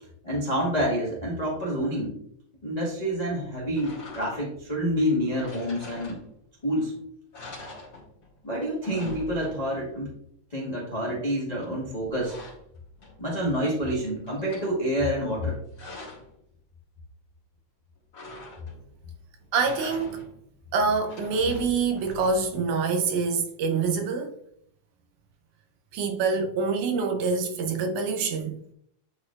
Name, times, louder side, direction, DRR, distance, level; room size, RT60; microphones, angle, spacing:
voice 1, 0.2-2.2 2.6-6.2 6.6-7.0 8.4-10.1 10.5-12.4 13.2-15.6, equal, 60° left, 0.4 m, -28 dB
sound 1, 3.8-4.6 5.3-6.6 6.9-7.0 7.3-8.4 8.7-9.9 11.6-13.4 13.8-14.7 15.4-16.4 18.1-18.9 19.4-20.4 20.9-22.7, left 2 dB, 35° left, 1.7 m, -44 dB
voice 2, 19.5-20.2 20.7-24.3 25.9-28.6, right 4 dB, 90° right, 2.3 m, -26 dB
9.1 x 4.3 x 2.4 m
omnidirectional pair, 3.4 m